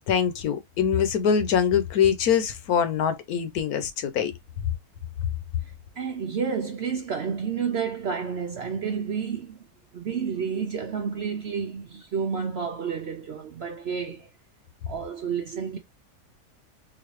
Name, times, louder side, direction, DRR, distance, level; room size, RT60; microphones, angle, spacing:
voice 1, 0.1-4.3, left 7 dB, 75° left, 1.2 m, -23 dB
voice 2, 6.0-9.6 9.9-14.3 14.9-15.8, right 6 dB, 60° right, 0.7 m, -30 dB
4.0 x 2.7 x 3.0 m
omnidirectional pair, 1.6 m